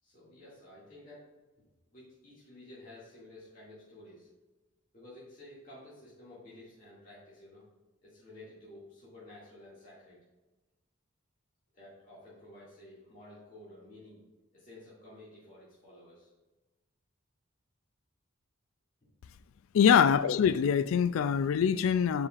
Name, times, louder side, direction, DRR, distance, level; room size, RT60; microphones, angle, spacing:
voice 1, 0.0-1.2 1.9-4.3 4.9-7.6 8.0-10.2 11.7-14.2 14.5-16.3, left 1 dB, 40° left, 2.2 m, -52 dB
voice 2, 19.7-22.3, left 7 dB, 80° left, 0.3 m, -24 dB
9.7 x 4.8 x 2.4 m
head